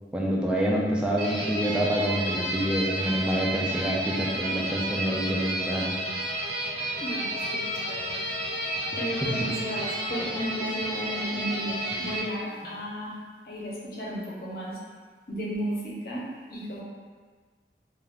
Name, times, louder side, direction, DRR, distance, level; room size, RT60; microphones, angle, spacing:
voice 1, 0.1-5.9, equal, 5° right, -4 dB, 0.3 m, -27 dB
sound 1, 1.2-12.2, right 1 dB, 60° right, 0.9 m, -31 dB
voice 2, 7.0-8.3 9.0-13.1 13.4-14.8 15.3-16.2 16.5-16.8, equal, 55° left, -5 dB, 0.7 m, -34 dB
2.4 x 2.3 x 3.4 m, 1.5 s
head